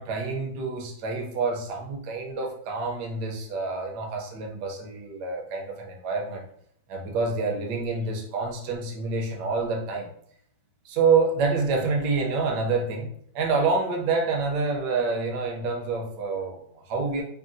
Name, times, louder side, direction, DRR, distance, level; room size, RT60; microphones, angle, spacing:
voice 1, 0.0-6.4 6.9-10.1 10.8-13.1 13.3-17.2, right 4 dB, 70° right, 1 dB, 1.1 m, -27 dB
3.6 x 2.3 x 2.5 m, 0.65 s
omnidirectional pair, 2.1 m